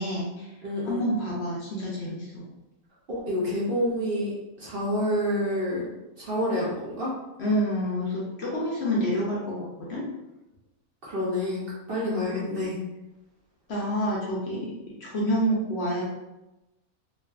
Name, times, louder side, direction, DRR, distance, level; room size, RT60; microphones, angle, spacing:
voice 1, 0.0-0.5 0.8-2.4 7.4-10.1 13.7-16.0, equal, 60° left, -5 dB, 0.8 m, -28 dB
voice 2, 0.6-1.1 3.1-4.3 4.6-5.8 6.2-7.1 11.0-11.6 11.9-12.8, left 1 dB, 55° right, -7 dB, 0.6 m, -28 dB
2.6 x 2.4 x 2.2 m, 0.99 s
omnidirectional pair, 1.4 m